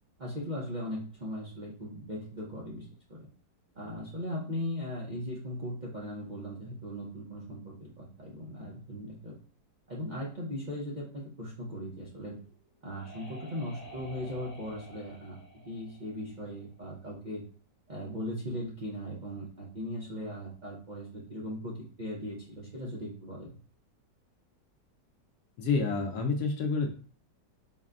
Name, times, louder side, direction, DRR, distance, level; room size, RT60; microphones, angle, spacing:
voice 1, 0.2-3.3 3.7-9.4 9.9-12.4 12.8-15.4 15.6-17.4 17.9-23.6, equal, 45° right, -5 dB, 0.6 m, -38 dB
sound 1, 12.4-16.9, left 1 dB, 50° left, 1.2 m, -51 dB
voice 2, 25.6-26.9, left 4 dB, 70° left, 3 dB, 1.1 m, -28 dB
4.1 x 2.2 x 3.6 m, 0.41 s
omnidirectional pair, 1.9 m